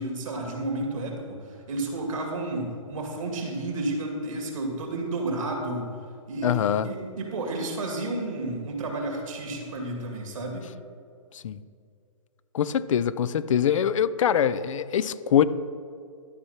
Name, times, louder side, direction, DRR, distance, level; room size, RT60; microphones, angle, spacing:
voice 1, 0.0-5.9 6.3-10.7, right 2 dB, 75° right, 2 dB, 2.3 m, -31 dB
voice 2, 6.4-6.9 11.3-11.6 12.5-15.4, left 9 dB, 70° left, 16 dB, 0.5 m, -23 dB
12.0 x 4.6 x 5.7 m, 2.3 s
hypercardioid pair, 150°, 17 cm